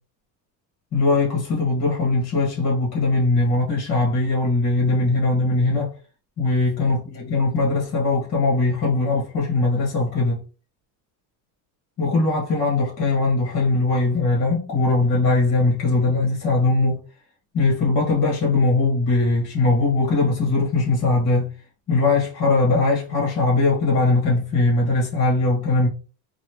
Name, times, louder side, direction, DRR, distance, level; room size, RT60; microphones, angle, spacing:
voice 1, 0.9-5.9 6.4-10.4 12.0-17.0 17.5-21.5 21.9-25.9, left 3 dB, 40° left, 1.4 m, -20 dB
3.1 x 2.7 x 3.0 m
cardioid pair, 175°, 41 cm